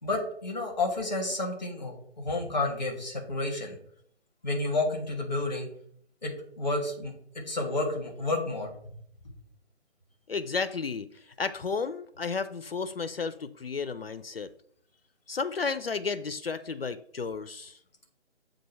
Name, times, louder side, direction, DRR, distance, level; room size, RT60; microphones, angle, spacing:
voice 1, 0.0-3.8 4.4-5.7 6.2-7.1 7.5-8.7, left 2 dB, 5° right, 0 dB, 0.6 m, -30 dB
voice 2, 10.3-11.1 11.4-14.5 15.3-17.8, left 5 dB, 55° left, 12 dB, 0.4 m, -32 dB
7.5 x 2.6 x 5.5 m, 0.66 s
figure-of-eight pair, 145°, 35 cm